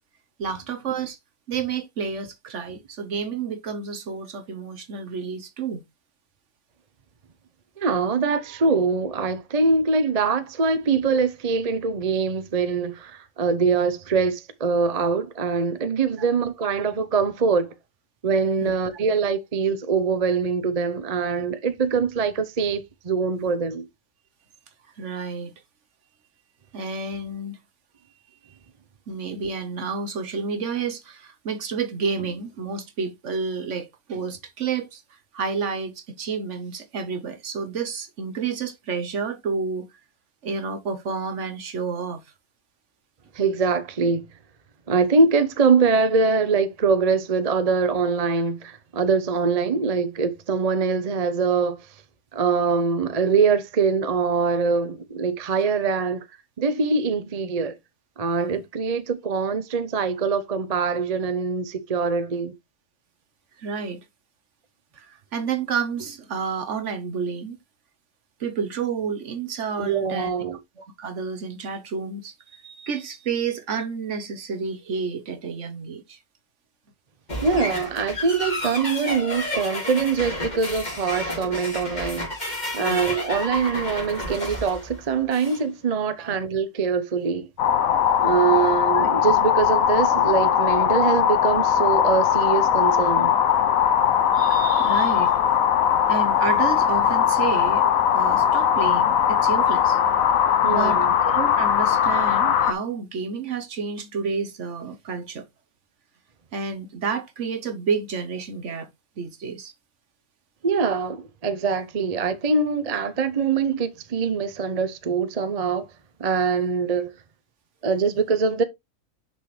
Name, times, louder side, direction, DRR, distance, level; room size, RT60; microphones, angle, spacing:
voice 1, 0.4-1.2 1.5-5.8 16.2-16.3 18.6-18.7 25.0-25.5 26.7-27.6 29.1-35.0 35.3-39.9 40.4-42.2 63.6-64.0 64.9-67.6 68.4-70.3 70.8-76.2 82.8-83.1 86.2-86.4 88.9-89.1 94.3-95.4 96.1-97.8 98.1-100.0 100.7-105.4 106.5-108.9 109.2-109.7, right 5 dB, 60° right, 1.3 m, -30 dB
voice 2, 7.8-17.7 18.2-23.8 43.3-44.3 44.9-51.9 52.3-56.2 56.6-57.7 58.2-62.5 69.8-70.6 77.4-82.3 82.7-87.5 88.2-93.3 100.6-101.1 110.6-115.8 116.2-117.1 117.8-118.6, right 5 dB, 35° right, 0.7 m, -23 dB
sound 1, 77.3-85.6, left 1 dB, 30° left, 3.3 m, -31 dB
sound 2, 87.6-102.7, left 9 dB, 70° left, 1.2 m, -20 dB
6.7 x 6.0 x 3.2 m
omnidirectional pair, 1.5 m